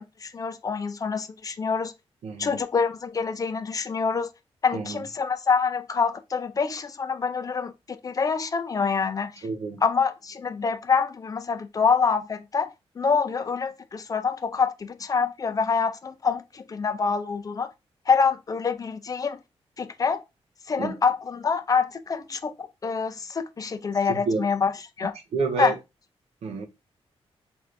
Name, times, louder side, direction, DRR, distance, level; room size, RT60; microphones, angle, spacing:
voice 1, 0.0-1.9 2.4-4.3 4.6-9.4 9.8-17.7 18.1-19.4 19.8-20.2 20.7-24.7 25.0-25.1 25.6-25.7, left 5 dB, 35° left, 0.4 m, -26 dB
voice 2, 2.2-2.6 4.7-5.0 9.4-9.8 20.8-20.9 24.1-24.4 25.3-25.8 26.4-26.7, right 4 dB, 70° right, 0.9 m, -28 dB
3.3 x 2.6 x 3.9 m
wide cardioid pair, 140°, 11 cm